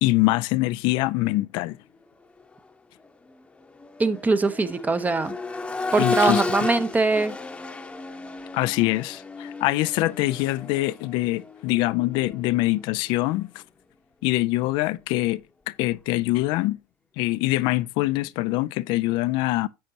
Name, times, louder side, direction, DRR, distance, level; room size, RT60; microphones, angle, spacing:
voice 1, 0.0-1.8 6.0-6.4 8.5-13.6 14.2-15.4 15.7-16.8 17.2-19.7, left 19 dB, 60° left, 0.4 m, -24 dB
Accelerating revving vroom, 2.4-2.6 3.0-12.9 14.6-14.7, left 3 dB, 10° left, 1.0 m, -33 dB
voice 2, 4.0-5.3 5.9-7.3, right 3 dB, 15° right, 0.9 m, -22 dB
10.0 x 7.6 x 2.8 m
hypercardioid pair, 90°, 9 cm